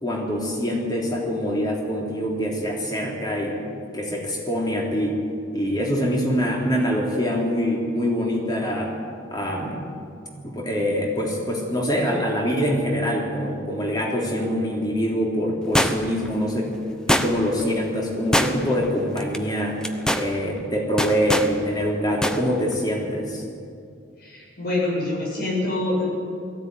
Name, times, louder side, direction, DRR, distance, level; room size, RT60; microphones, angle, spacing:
voice 1, 0.0-3.6 3.9-5.2 5.5-9.0 9.3-9.8 10.4-16.7 17.1-19.8 20.1-23.4, equal, 20° left, -1 dB, 3.4 m, -24 dB
sound 1, 15.7-16.3 17.1-17.6 18.3-18.8 19.2-19.4 19.8-20.3 21.0-21.5 22.2-22.4 22.7-22.8, equal, 5° left, 0.8 m, -22 dB
voice 2, 24.2-26.1, left 2 dB, 50° left, -3 dB, 7.5 m, -25 dB
19.5 x 15.0 x 9.5 m, 2.4 s
head